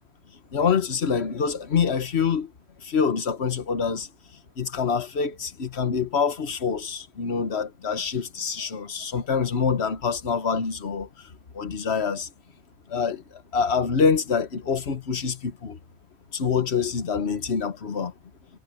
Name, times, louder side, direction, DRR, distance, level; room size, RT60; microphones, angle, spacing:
voice 1, 0.5-2.5 2.8-4.1 4.6-12.3 12.9-15.8 16.3-18.1, left 6 dB, 50° left, 1.4 m, -26 dB
omnidirectional pair, 1.4 m